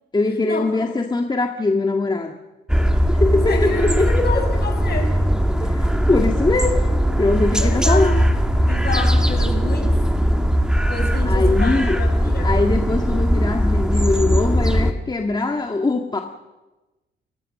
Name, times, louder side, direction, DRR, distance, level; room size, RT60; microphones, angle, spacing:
voice 1, 0.1-2.4 3.1-4.4 5.6-6.8 7.2-8.2 11.3-12.0 12.4-16.2, left 3 dB, 20° left, 3 dB, 1.8 m, -22 dB
sound 1, 2.7-14.9, equal, 5° right, 2.0 m, -19 dB
voice 2, 3.5-5.1 7.6-8.1 8.7-10.0 10.9-12.5, left 3 dB, 55° left, 4 dB, 6.9 m, -28 dB
29.5 x 15.0 x 6.7 m, 1.1 s
cardioid pair, 90°, 20 cm